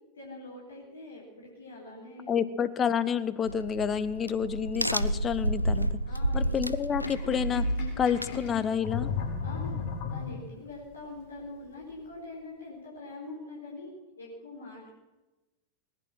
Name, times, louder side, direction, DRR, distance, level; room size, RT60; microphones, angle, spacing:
voice 1, 0.1-2.3 6.0-6.4 7.1-7.3 7.7-8.0 9.4-9.8 10.1-14.9, left 2 dB, 75° left, -4 dB, 4.3 m, -44 dB
voice 2, 2.3-6.0 6.3-7.6 8.0-9.1, left 7 dB, 25° left, 14 dB, 0.9 m, -29 dB
Crack, 3.5-8.9, right 1 dB, 90° right, 0.5 m, -31 dB
Sink (filling or washing), 6.9-10.7, left 6 dB, 50° left, 4.0 m, -35 dB
19.5 x 11.0 x 6.3 m, 1.1 s
figure-of-eight pair, 90°, 0 cm